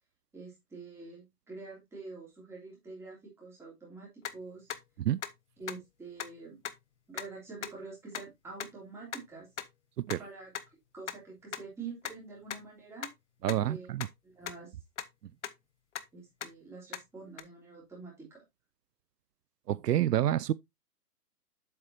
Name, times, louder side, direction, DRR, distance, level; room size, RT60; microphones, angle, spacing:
voice 1, 0.3-4.7 5.6-6.6 7.1-9.5 10.2-10.5 10.9-13.1 13.5-13.9 14.2-14.7 16.1-18.4, right 4 dB, 5° right, 3.0 m, -46 dB
sound 1, 4.3-4.4 4.7-4.8 5.2-5.3 5.7-5.8 6.2-6.3 6.7-6.8 7.2-7.3 7.6-7.7 8.1-8.2 8.6-8.7 9.1-9.2 9.6-9.7 10.1-10.2 10.6-10.7 11.1-11.2 11.5-11.6 12.1-12.2 12.5-12.6 13.0-13.1 13.5-13.6 14.0-14.1 14.5-14.6 15.0-15.1 15.4-15.5 16.0-16.1 16.4-16.5 16.9-17.0 17.4-17.5, left 9 dB, 50° left, 0.8 m, -36 dB
voice 2, 13.4-14.1 19.7-20.5, right 12 dB, 80° right, 0.5 m, -28 dB
7.9 x 6.8 x 2.8 m
hypercardioid pair, 160°, 47 cm